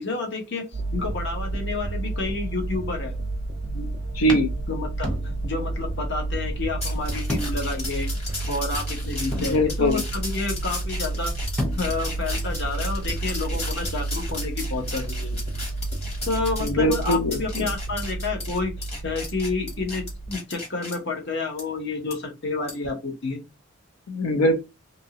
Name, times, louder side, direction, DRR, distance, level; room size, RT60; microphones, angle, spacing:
voice 1, 0.0-3.1 3.7-3.9 4.7-5.2 5.4-8.1 8.5-11.3 11.8-15.7 16.3-23.4, left 3 dB, 55° left, 3 dB, 0.8 m, -30 dB
sound 1, 0.7-20.3, right 2 dB, 35° right, 0.4 m, -30 dB
sound 2, 3.5-3.8 4.3-5.7 6.0-6.1 7.3-7.8 8.2-8.3 9.3-10.1 11.2-11.3 11.6-12.2, left 1 dB, 5° left, 0.6 m, -33 dB
voice 2, 4.1-4.5 9.3-10.0 16.6-17.7 24.1-24.6, equal, 90° left, 5 dB, 0.5 m, -22 dB
sound 3, 6.8-21.0 21.6-21.7 22.1-22.2 22.7-22.9, left 2 dB, 30° left, 1.2 m, -36 dB
2.8 x 2.7 x 2.7 m, 0.25 s
head